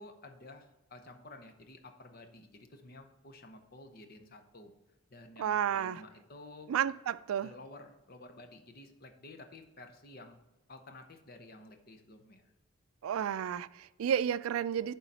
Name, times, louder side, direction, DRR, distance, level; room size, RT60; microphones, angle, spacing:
voice 1, 0.0-4.7 5.1-6.7 7.4-10.4 10.7-12.5, left 2 dB, 45° left, 0.8 m, -52 dB
voice 2, 5.4-6.0 6.7-7.5 13.0-14.9, right 9 dB, 90° right, 0.3 m, -31 dB
11.0 x 4.0 x 4.2 m
head